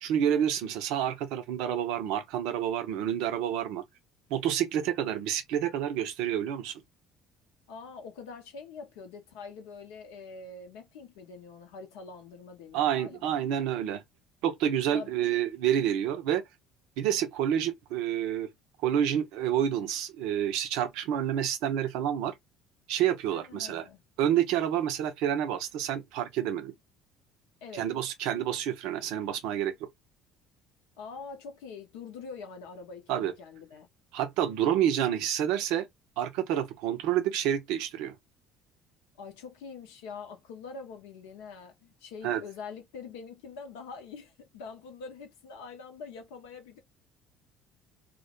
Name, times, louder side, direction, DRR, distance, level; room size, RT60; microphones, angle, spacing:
voice 1, 0.0-3.8 4.3-6.8 12.7-14.0 14.4-16.4 17.0-18.5 18.8-22.3 22.9-23.8 24.2-26.7 27.7-29.9 33.1-33.3 34.1-35.9 36.2-38.1 42.2-42.4, right 10 dB, 65° right, 0.5 m, -28 dB
voice 2, 7.7-13.3 14.9-15.1 23.3-24.0 27.6-27.9 31.0-33.9 39.2-46.8, left 5 dB, 65° left, 0.6 m, -44 dB
2.1 x 2.0 x 2.8 m
figure-of-eight pair, 55°, 0 cm